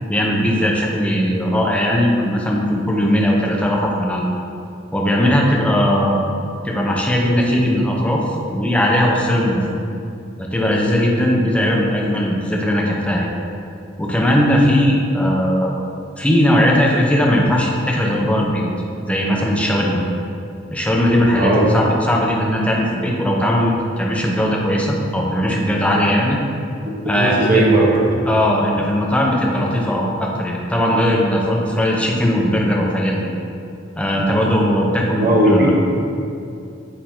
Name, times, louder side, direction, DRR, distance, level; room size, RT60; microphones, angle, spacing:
voice 1, 0.1-4.3 4.9-6.2 6.6-9.8 10.4-13.3 14.0-15.7 16.2-18.6 19.0-20.0 20.7-26.4 27.0-27.6 28.3-33.3 34.0-35.7, equal, 5° left, -2 dB, 0.7 m, -18 dB
voice 2, 27.2-28.1 35.2-35.7, right 1 dB, 50° right, -4 dB, 1.0 m, -16 dB
8.5 x 2.9 x 4.3 m, 2.6 s
head